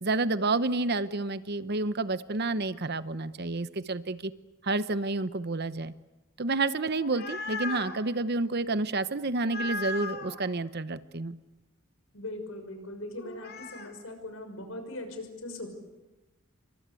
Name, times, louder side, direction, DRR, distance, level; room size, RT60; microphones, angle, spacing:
voice 1, 0.0-4.3 4.6-5.9 6.4-11.4, right 3 dB, 50° right, 13 dB, 0.9 m, -29 dB
sound 1, 6.8-8.0 9.4-10.4 13.2-13.9, left 2 dB, 45° left, 2.7 m, -37 dB
voice 2, 12.1-15.7, left 1 dB, 70° left, 7 dB, 6.1 m, -40 dB
28.5 x 24.5 x 8.4 m, 1.1 s
head